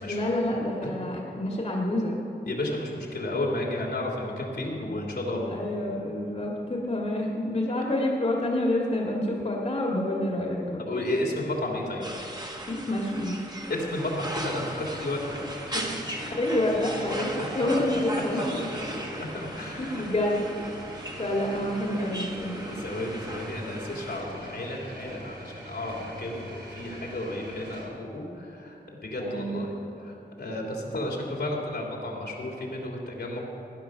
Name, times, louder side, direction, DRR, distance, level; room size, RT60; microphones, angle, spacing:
voice 1, 0.1-2.2 5.5-10.8 12.7-13.4 16.4-18.4 19.8-20.4 21.2-22.8 29.2-29.7, left 1 dB, 40° left, -2 dB, 1.9 m, -28 dB
voice 2, 2.5-5.5 10.8-12.1 13.7-15.5 15.7-16.0 18.7-20.0 21.3-21.5 22.6-29.7 30.0-33.4, left 1 dB, 75° left, -2 dB, 3.1 m, -32 dB
sound 1, 12.0-24.2, right 1 dB, 25° right, 1.6 m, -38 dB
sound 2, 13.9-27.8, right 1 dB, 85° right, 4.1 m, -43 dB
16.5 x 10.5 x 6.5 m, 2.8 s
wide cardioid pair, 110°, 17 cm